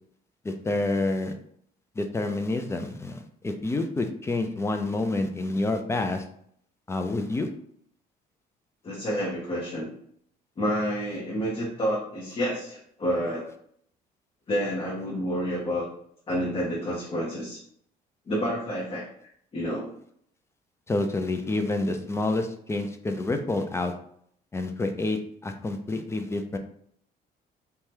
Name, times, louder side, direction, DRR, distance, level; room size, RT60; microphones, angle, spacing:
voice 1, 0.4-1.3 2.0-6.2 6.9-7.5 20.9-23.9 24.5-26.6, left 2 dB, 15° left, 6 dB, 0.3 m, -28 dB
voice 2, 8.8-9.9 10.6-13.5 14.5-15.9 16.3-17.6 18.3-19.0 19.5-19.9, equal, 30° left, -5 dB, 0.8 m, -29 dB
2.7 x 2.2 x 3.3 m, 0.66 s
cardioid pair, 110°, 17 cm